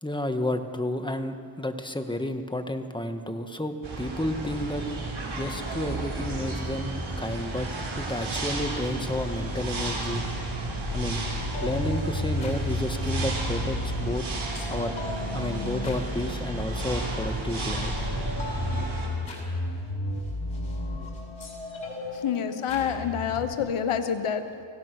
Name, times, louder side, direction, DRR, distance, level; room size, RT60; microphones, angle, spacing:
voice 1, 0.0-4.8 5.4-7.7 8.0-10.2 10.9-11.2 11.6-14.3 14.7-14.9 15.3-17.9, left 1 dB, 10° left, 6 dB, 1.8 m, -31 dB
sound 1, 3.8-19.1, right 2 dB, 70° right, 4.7 m, -33 dB
sound 2, 6.4-18.4, right 2 dB, 25° right, 2.2 m, -41 dB
sound 3, 9.8-23.5, left 2 dB, 65° left, 6.1 m, -34 dB
voice 2, 22.1-24.5, left 7 dB, 90° left, 9 dB, 1.1 m, -27 dB
25.5 x 16.5 x 6.3 m, 2.4 s
cardioid pair, 50°, 49 cm